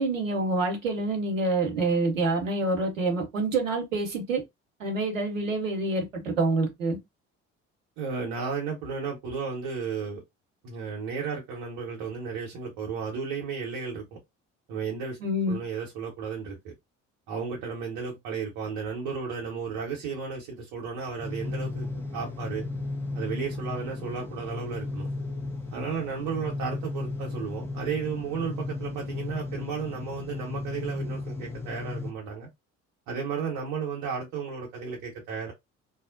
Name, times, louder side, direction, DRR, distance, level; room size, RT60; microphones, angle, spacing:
voice 1, 0.0-4.4 4.8-7.0 15.2-15.6, right 2 dB, 80° right, 0.8 m, -27 dB
voice 2, 8.0-10.2 10.6-14.2 14.7-15.2 15.5-16.7 17.3-22.6 23.1-25.1 25.7-32.5 33.1-35.5, right 5 dB, 55° right, 0.9 m, -34 dB
sound 1, 21.2-32.1, left 2 dB, 5° left, 0.7 m, -35 dB
2.5 x 2.0 x 2.5 m
figure-of-eight pair, 55°, 38 cm